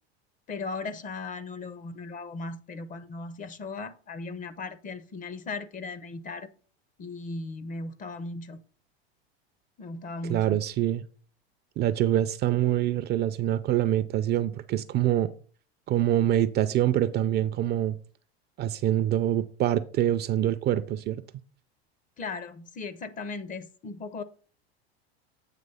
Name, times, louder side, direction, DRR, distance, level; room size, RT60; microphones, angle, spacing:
voice 1, 0.5-6.5 7.0-8.6 9.8-10.6 22.2-24.2, left 3 dB, 25° left, 0.6 m, -37 dB
voice 2, 10.3-11.0 11.8-15.3 15.9-18.0 18.6-21.2, right 12 dB, 30° right, 0.4 m, -25 dB
8.3 x 3.1 x 5.4 m
hypercardioid pair, 105°, 32 cm